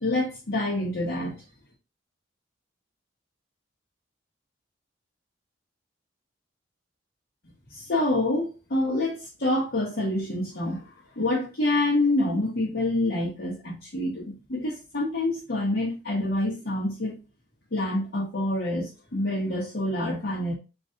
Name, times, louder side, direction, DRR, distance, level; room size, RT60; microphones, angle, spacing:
voice 1, 0.0-1.3 7.7-10.9 11.2-17.2 17.7-20.5, left 1 dB, 60° left, 1.1 m, -27 dB
3.1 x 2.6 x 3.8 m
head